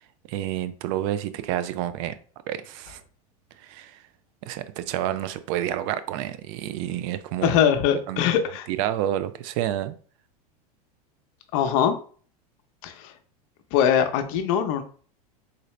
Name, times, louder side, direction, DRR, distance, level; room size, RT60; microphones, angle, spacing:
voice 1, 0.3-2.1 2.5-3.0 3.6-4.0 4.4-7.6 7.9-8.2 8.7-10.0, right 12 dB, 55° right, 0.4 m, -29 dB
voice 2, 7.4-8.7 11.5-12.0 12.8-13.1 13.7-14.8, left 9 dB, 60° left, 0.7 m, -22 dB
3.9 x 2.6 x 3.2 m
hypercardioid pair, 110°, 20 cm